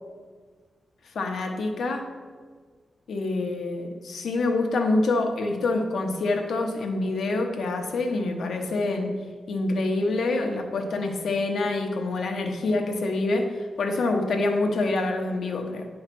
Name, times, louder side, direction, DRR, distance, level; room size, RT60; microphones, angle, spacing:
voice 1, 1.1-2.1 3.1-9.1 9.5-15.9, left 2 dB, 80° left, 3 dB, 0.9 m, -26 dB
8.9 x 3.2 x 5.9 m, 1.5 s
wide cardioid pair, 170°, 0 cm